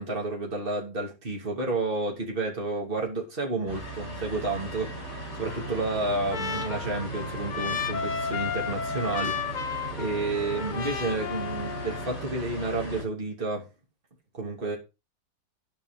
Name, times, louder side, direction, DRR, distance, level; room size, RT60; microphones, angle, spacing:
voice 1, 0.0-4.9 5.3-9.6 10.0-13.7 14.3-14.8, right 2 dB, 30° right, 3.1 m, -30 dB
sound 1, 3.7-13.0, right 2 dB, 45° left, 8.0 m, -37 dB
Trumpet, 5.5-12.2, left 6 dB, 85° left, 0.4 m, -34 dB
12.5 x 5.5 x 5.2 m
omnidirectional pair, 1.9 m